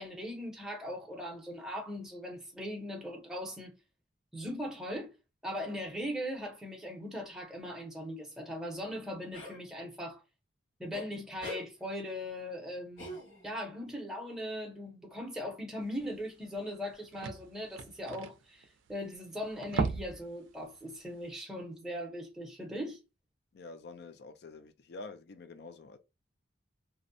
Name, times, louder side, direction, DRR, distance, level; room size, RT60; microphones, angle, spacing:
voice 1, 0.0-3.8 4.3-5.1 5.4-10.2 10.8-13.2 13.4-23.0, equal, 5° right, 0.6 m, -39 dB
sound 1, 9.3-9.6 10.9-11.1 11.4-11.7 13.0-13.6, equal, 90° left, 1.5 m, -43 dB
sound 2, 16.2-16.3 16.5-16.6 16.8-19.1 19.5-20.3 20.6-20.8 21.2-21.3, right 4 dB, 80° right, 0.4 m, -35 dB
voice 2, 23.5-26.0, left 3 dB, 55° left, 0.4 m, -47 dB
2.6 x 2.0 x 2.6 m
head